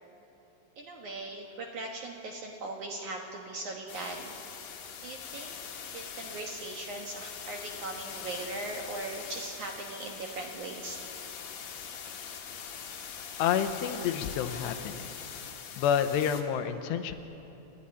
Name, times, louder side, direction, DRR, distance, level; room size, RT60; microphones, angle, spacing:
voice 1, 0.8-4.3 5.0-5.6 5.9-11.0, right 2 dB, 60° right, 1 dB, 2.1 m, -39 dB
sound 1, 3.9-16.4, left 7 dB, 60° left, 3.0 m, -43 dB
voice 2, 13.4-15.1 15.8-17.1, left 8 dB, 80° left, 9 dB, 3.0 m, -29 dB
29.5 x 12.0 x 9.9 m, 3.0 s
omnidirectional pair, 5.1 m